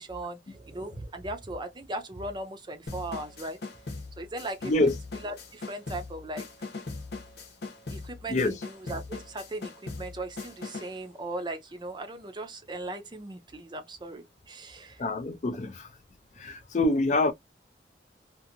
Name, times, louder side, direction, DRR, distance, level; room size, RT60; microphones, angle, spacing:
voice 1, 0.0-3.6 4.2-4.7 5.2-6.4 7.9-9.7 10.0-15.0, right 2 dB, 25° right, 0.5 m, -38 dB
sound 1, 2.9-11.0, left 3 dB, 70° left, 0.9 m, -40 dB
voice 2, 4.6-5.0 8.3-8.6 15.0-15.9 16.4-17.3, left 2 dB, 40° left, 0.4 m, -26 dB
2.8 x 2.5 x 2.6 m
head